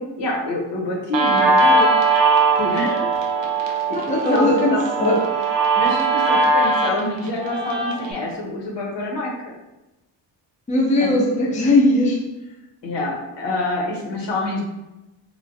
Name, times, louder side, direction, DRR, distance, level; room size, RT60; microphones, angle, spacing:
voice 1, 0.0-1.9 2.6-3.0 3.6-4.8 5.7-9.3 11.0-11.1 12.8-14.6, left 2 dB, 75° left, -2 dB, 0.9 m, -27 dB
Guitar, 1.1-8.1, right 3 dB, 80° right, 0.7 m, -20 dB
voice 2, 3.9-5.3 10.7-12.2, left 1 dB, 15° left, -1 dB, 0.5 m, -18 dB
3.3 x 2.1 x 2.6 m, 0.98 s
cardioid pair, 90°, 44 cm